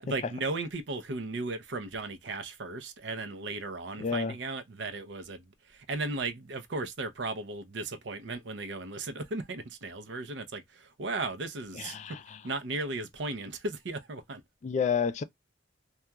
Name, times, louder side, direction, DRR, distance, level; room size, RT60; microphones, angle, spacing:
voice 1, 0.0-12.2 12.4-14.4, right 3 dB, 70° right, 0.6 m, -36 dB
voice 2, 4.0-4.4 11.7-12.4 14.6-15.2, left 6 dB, 40° left, 0.3 m, -30 dB
2.8 x 2.3 x 2.2 m
head